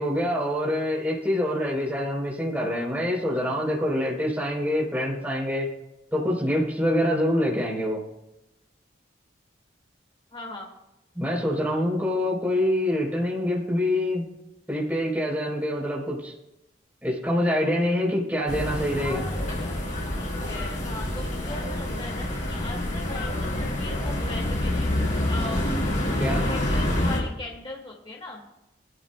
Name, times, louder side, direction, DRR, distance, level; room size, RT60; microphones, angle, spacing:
voice 1, 0.0-5.7 6.1-8.0 11.2-14.3 14.7-16.3 17.0-19.2 26.2-26.5, left 1 dB, 10° right, -3 dB, 3.7 m, -25 dB
voice 2, 10.3-10.7 19.0-19.4 20.2-24.9 25.3-25.6 26.4-28.4, left 2 dB, 30° left, -1 dB, 2.1 m, -39 dB
sound 1, 18.5-27.2, left 1 dB, 45° left, 4.5 m, -27 dB
21.0 x 12.5 x 2.3 m, 0.89 s
head